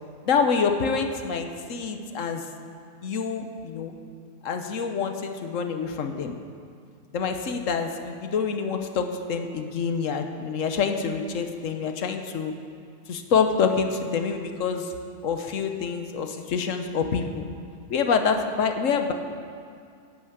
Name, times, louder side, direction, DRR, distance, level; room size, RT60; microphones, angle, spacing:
voice 1, 0.2-2.4 3.0-3.9 4.4-6.3 7.1-12.5 13.1-14.9 15.2-17.5 17.9-19.1, left 5 dB, 90° left, 6 dB, 1.3 m, -26 dB
11.0 x 9.2 x 7.9 m, 2.3 s
omnidirectional pair, 1.3 m